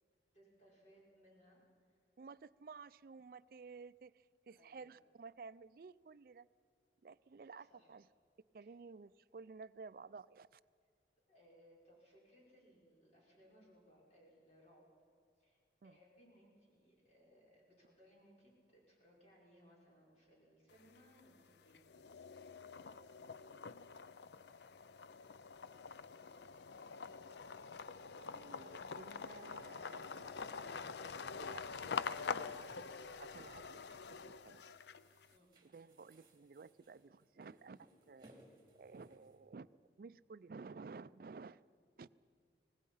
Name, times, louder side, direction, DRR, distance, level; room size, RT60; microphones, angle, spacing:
voice 1, 0.3-2.0 4.5-4.9 7.5-8.0 8.6-8.8 11.3-14.9 15.4-21.8 33.3-33.5 35.3-35.5, equal, 40° left, -4 dB, 5.2 m, -66 dB
voice 2, 2.2-6.5 7.0-8.1 8.5-10.6 15.8-15.9 28.1-30.9 31.3-32.7 33.2-33.8 34.1-34.7 35.7-38.4 38.8-41.6 42.0-42.1, right 4 dB, 55° right, 16 dB, 0.4 m, -54 dB
sound 1, 20.7-21.3 21.7-35.3, left 5 dB, 75° left, 0.5 m, -46 dB
sound 2, 30.4-30.6 32.0-33.0 33.4-34.2 34.5-34.7 35.0-39.4, right 1 dB, 25° right, 2.6 m, -66 dB
24.5 x 18.5 x 5.6 m, 2.3 s
head